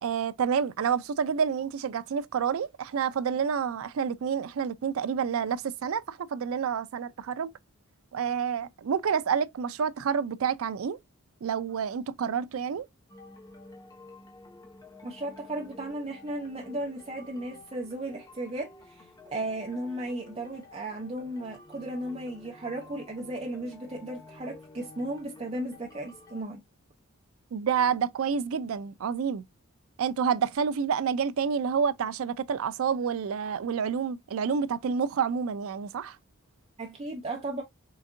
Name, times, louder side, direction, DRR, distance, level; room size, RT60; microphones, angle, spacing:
voice 1, 0.0-7.5 8.1-11.0 11.4-12.9 27.5-29.5 30.0-36.2, right 7 dB, 75° right, 0.4 m, -28 dB
sound 1, 13.1-26.4, left 3 dB, 15° left, 0.7 m, -51 dB
voice 2, 15.0-26.6 36.8-37.6, right 1 dB, 30° right, 0.6 m, -35 dB
3.9 x 3.4 x 2.5 m
head